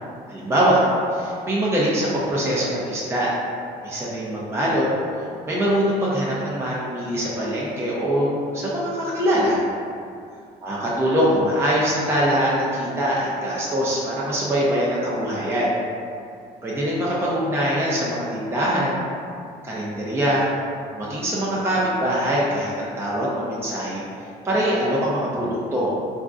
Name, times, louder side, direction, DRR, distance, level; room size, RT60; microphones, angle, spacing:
voice 1, 0.3-0.8 1.1-3.3 3.8-4.9 5.5-9.6 10.6-15.8 16.6-19.0 19.6-20.4 20.9-24.0 24.4-26.0, equal, 15° right, -6 dB, 0.6 m, -23 dB
4.3 x 2.5 x 2.4 m, 2.4 s
cardioid pair, 110°, 17 cm